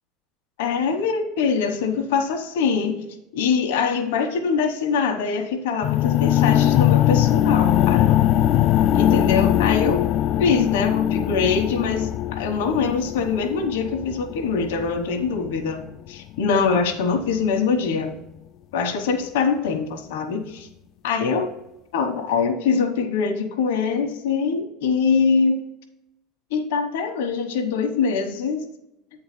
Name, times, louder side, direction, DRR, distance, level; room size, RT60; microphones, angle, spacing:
voice 1, 0.6-3.0 3.3-8.2 8.9-10.0 10.4-18.2 18.7-20.7 21.0-21.5 21.9-25.6 26.5-28.6, left 5 dB, 85° left, 3 dB, 1.1 m, -23 dB
sound 1, 5.8-15.8, left 12 dB, 50° left, 0.3 m, -21 dB
8.4 x 3.9 x 6.8 m, 0.89 s
supercardioid pair, 115°, 0 cm